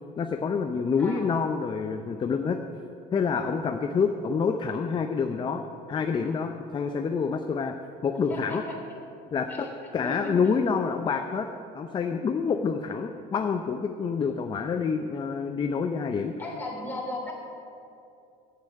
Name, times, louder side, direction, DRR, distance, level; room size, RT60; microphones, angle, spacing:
voice 1, 0.2-2.6 3.1-5.6 5.9-7.7 8.0-8.6 9.3-9.7 9.9-11.5 11.7-16.3, left 5 dB, 25° left, 6 dB, 0.6 m, -27 dB
voice 2, 16.4-17.3, left 2 dB, 10° left, -3 dB, 3.3 m, -35 dB
8.5 x 8.2 x 8.8 m, 2.6 s
cardioid pair, 120°, 18 cm